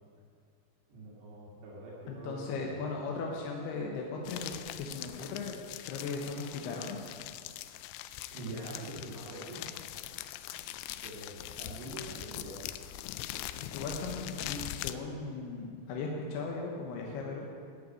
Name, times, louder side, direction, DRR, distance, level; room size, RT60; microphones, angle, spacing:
voice 1, 0.9-2.8 8.3-9.7 11.0-12.6, right 1 dB, 75° right, -7 dB, 4.6 m, -44 dB
voice 2, 2.1-5.6 5.9-7.2 10.6-10.7 13.7-17.5, left 4 dB, 70° left, 0 dB, 2.9 m, -38 dB
sound 1, 4.3-14.9, left 13 dB, 90° left, 2.9 m, -42 dB
14.0 x 6.8 x 9.2 m, 2.3 s
omnidirectional pair, 5.1 m